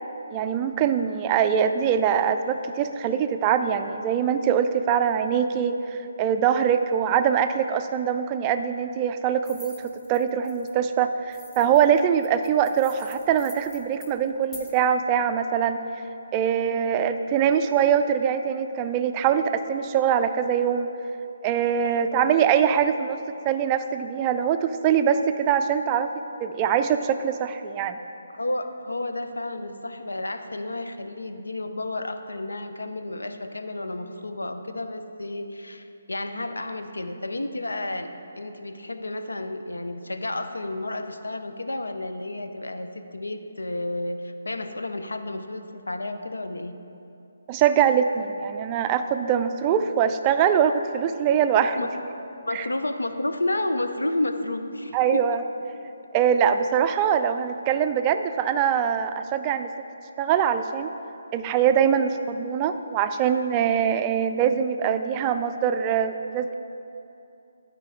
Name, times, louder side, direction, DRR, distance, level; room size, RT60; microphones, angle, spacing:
voice 1, 0.3-15.8 16.3-20.9 21.4-23.2 23.5-26.1 26.4-28.0 47.5-51.8 52.5-52.7 54.9-55.4 56.1-59.7 60.2-60.9 61.3-66.5, right 8 dB, 25° right, 9 dB, 0.3 m, -23 dB
sound 1, 9.4-10.7 11.3-14.8, left 1 dB, 15° left, 1.0 m, -46 dB
voice 2, 21.8-22.3 22.7-23.0 28.3-38.1 38.4-46.7 51.5-51.9 52.4-55.4, left 2 dB, 90° left, 8 dB, 0.5 m, -31 dB
11.0 x 4.5 x 4.7 m, 2.8 s
figure-of-eight pair, 150°, 0 cm